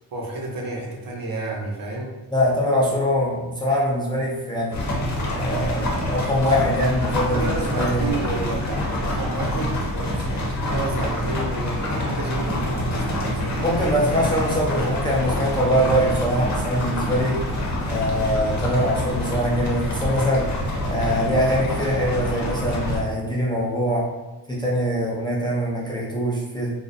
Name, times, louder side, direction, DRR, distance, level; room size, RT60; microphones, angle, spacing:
voice 1, 0.1-2.1 7.3-13.7, right 2 dB, 55° right, -1 dB, 0.7 m, -31 dB
voice 2, 2.3-4.8 5.4-8.2 13.6-17.4 17.9-20.5 20.8-24.0 24.5-26.7, equal, 10° left, -6 dB, 0.4 m, -23 dB
sound 1, 4.7-23.0, left 1 dB, 45° left, 0.7 m, -26 dB
2.5 x 2.1 x 2.5 m, 1.1 s
cardioid pair, 95°, 41 cm